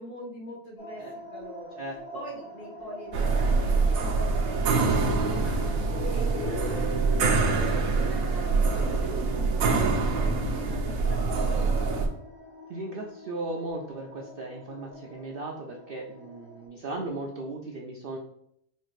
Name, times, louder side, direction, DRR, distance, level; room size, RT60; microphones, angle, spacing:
voice 1, 0.0-1.8 2.1-11.9, right 1 dB, 65° left, -3 dB, 1.8 m, -43 dB
sound 1, 0.8-16.7, equal, 85° left, 1.9 m, -45 dB
voice 2, 1.8-2.2 12.7-18.2, right 2 dB, 65° right, 0 dB, 0.5 m, -37 dB
sound 2, 3.1-12.1, right 4 dB, 80° right, 1.1 m, -25 dB
Guitar, 6.3-10.2, equal, 50° left, 0.8 m, -41 dB
4.3 x 2.4 x 3.1 m, 0.73 s
omnidirectional pair, 1.4 m